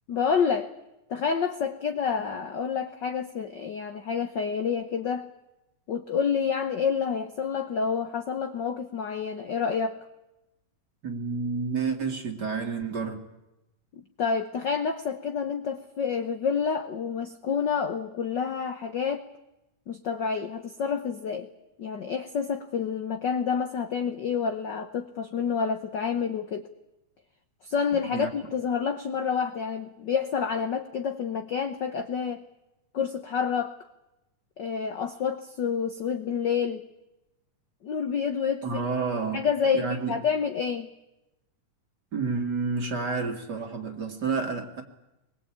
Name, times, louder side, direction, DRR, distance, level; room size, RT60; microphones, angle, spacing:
voice 1, 0.1-0.7 1.1-5.3 5.9-10.0 13.9-19.3 19.9-21.5 21.8-26.7 27.6-32.4 32.9-33.7 34.6-36.9 37.8-38.6 39.3-40.9, left 6 dB, 75° left, 1.0 m, -28 dB
voice 2, 11.0-13.3 28.1-28.3 38.6-39.5 39.7-40.2 42.1-44.8, right 4 dB, 35° right, 2.3 m, -30 dB
24.0 x 21.5 x 8.7 m
omnidirectional pair, 3.5 m